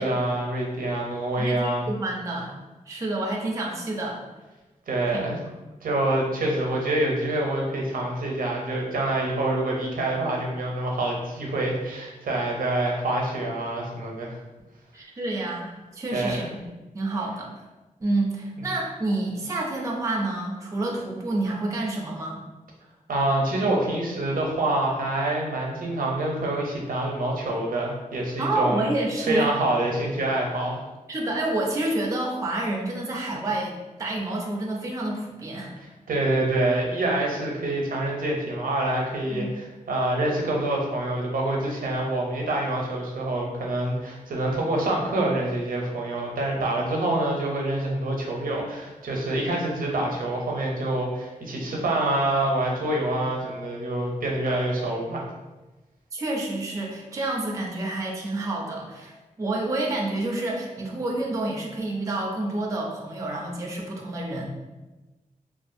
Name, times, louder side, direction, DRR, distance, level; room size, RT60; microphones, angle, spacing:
voice 1, 0.0-1.9 4.9-5.4 5.8-14.4 16.1-16.5 23.1-28.9 29.3-30.8 36.1-55.3, right 1 dB, 85° right, -1 dB, 0.6 m, -26 dB
voice 2, 1.4-2.5 2.9-4.2 5.1-5.3 14.9-16.7 16.9-17.5 18.0-22.4 28.4-29.5 31.1-35.7 39.3-39.5 56.1-64.5, right 2 dB, 25° right, -1 dB, 0.4 m, -28 dB
2.5 x 2.4 x 2.5 m, 1.1 s
wide cardioid pair, 155°, 14 cm